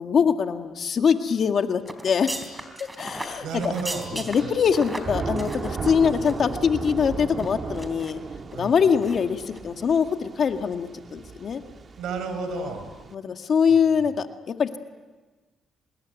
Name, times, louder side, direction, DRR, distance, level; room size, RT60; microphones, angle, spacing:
voice 1, 0.0-2.3 3.0-3.5 4.1-8.2 8.5-11.6 12.4-12.7 13.1-14.8, left 6 dB, 55° left, 6 dB, 1.9 m, -23 dB
sound 1, 1.8-6.5 6.8-6.9 7.4-8.1 8.5-8.7 9.0-9.2 9.5-9.6, right 1 dB, 15° right, 3.8 m, -37 dB
Thunder / Rain, 3.2-13.1, right 4 dB, 40° right, 1.7 m, -36 dB
voice 2, 3.4-4.6 6.0-6.4 8.5-9.0 12.0-12.9 13.7-14.1, right 5 dB, 80° right, 8 dB, 5.2 m, -34 dB
25.5 x 21.0 x 9.3 m, 1.3 s
cardioid pair, 90°, 0 cm